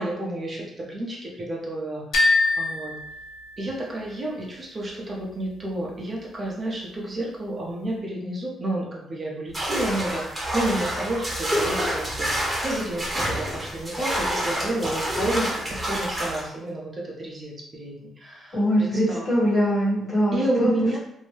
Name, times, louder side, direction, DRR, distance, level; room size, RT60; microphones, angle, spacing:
voice 1, 0.0-3.0 3.6-19.3 20.3-21.0, right 1 dB, 35° right, -3 dB, 0.7 m, -30 dB
sound 1, 2.1-4.1, left 3 dB, 70° left, 0.7 m, -24 dB
sound 2, 9.5-16.4, equal, 20° right, 1.0 m, -28 dB
voice 2, 18.5-20.7, equal, 40° left, -6 dB, 1.5 m, -22 dB
2.6 x 2.1 x 3.2 m, 0.80 s
cardioid pair, 90°, 0 cm